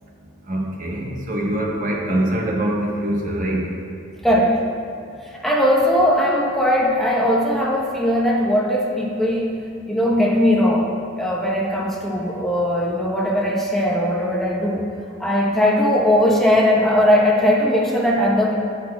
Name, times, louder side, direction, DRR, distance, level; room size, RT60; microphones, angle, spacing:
voice 1, 0.5-3.6, right 1 dB, 45° right, -2 dB, 1.1 m, -23 dB
voice 2, 4.2-4.6 5.2-9.6 9.9-10.9 11.2-14.8 15.2-18.5, equal, ahead, -3 dB, 0.9 m, -19 dB
10.0 x 7.5 x 2.3 m, 2.4 s
head